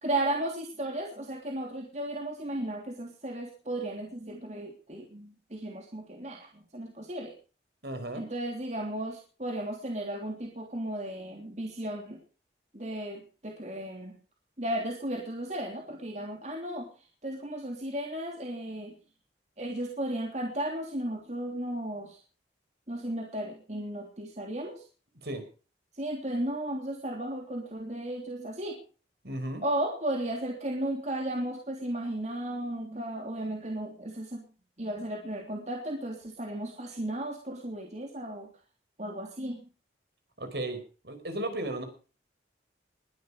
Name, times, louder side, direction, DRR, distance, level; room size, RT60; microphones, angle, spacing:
voice 1, 0.0-7.3 8.1-12.2 12.7-14.2 14.6-16.9 17.2-18.9 19.6-22.2 22.9-24.8 25.9-28.8 29.6-34.4 34.8-38.5 39.0-39.7, right 1 dB, 40° right, 2 dB, 3.2 m, -35 dB
voice 2, 7.8-8.3 25.2-25.4 29.2-29.6 40.4-41.8, right 1 dB, 60° right, 8 dB, 4.8 m, -35 dB
20.5 x 12.0 x 5.0 m, 0.38 s
head